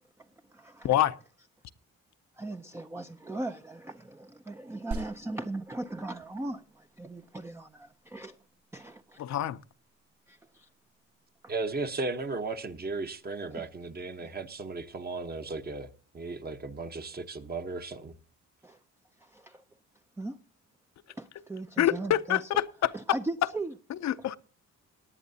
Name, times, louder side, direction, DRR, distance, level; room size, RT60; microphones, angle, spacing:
voice 1, 0.2-1.0 2.4-8.4 8.7-9.2 10.3-10.7 11.4-11.5 13.5-13.7 18.6-18.8 19.2-19.6 20.2-20.4 21.2-22.5 22.9-23.7 24.2-24.3, right 2 dB, 10° right, 0.5 m, -39 dB
voice 2, 0.8-1.2 9.2-9.6 21.8-22.9 24.0-24.4, left 12 dB, 65° left, 0.6 m, -26 dB
sound 1, 4.9-14.9, right 3 dB, 80° right, 2.5 m, -48 dB
voice 3, 11.5-18.1, right 3 dB, 30° right, 1.0 m, -36 dB
18.5 x 10.5 x 2.8 m
cardioid pair, 90°, 30 cm